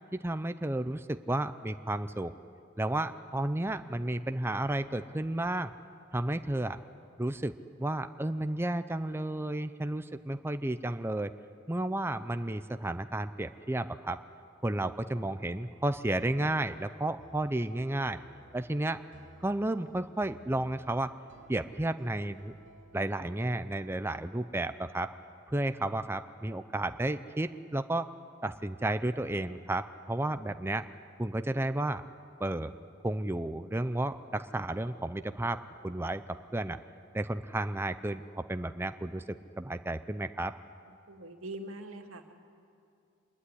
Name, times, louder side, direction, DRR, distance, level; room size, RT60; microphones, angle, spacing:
voice 1, 0.1-2.3 2.8-5.7 6.1-6.8 7.2-7.5 7.8-11.3 11.7-14.2 14.6-18.2 18.5-19.0 19.4-21.1 21.5-22.5 22.9-25.1 25.5-28.1 28.4-30.8 31.2-32.0 32.4-32.7 33.0-36.2 36.5-36.8 37.1-40.5, right 1 dB, 10° right, 10 dB, 0.6 m, -32 dB
sound 1, 17.2-23.4, right 1 dB, 65° right, 2.8 m, -57 dB
voice 2, 40.9-42.3, right 1 dB, 85° right, 5 dB, 2.3 m, -43 dB
25.5 x 21.5 x 9.9 m, 2.5 s
head